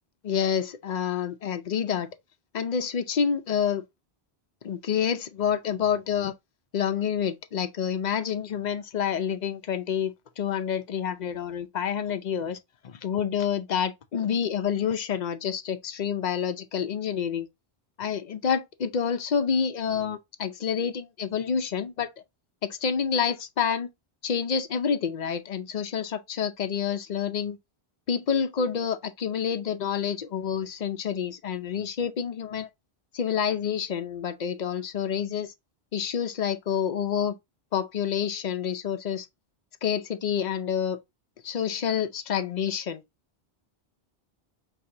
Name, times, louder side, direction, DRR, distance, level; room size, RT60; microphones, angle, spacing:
voice 1, 0.2-2.1 2.5-3.8 4.6-6.3 6.7-12.6 12.8-17.5 18.0-22.1 22.6-23.9 24.2-27.6 28.1-32.7 33.1-35.5 35.9-37.4 37.7-39.3 39.8-41.0 41.4-43.0, left 7 dB, 50° left, 0.7 m, -28 dB
5.9 x 2.9 x 2.6 m
omnidirectional pair, 1.1 m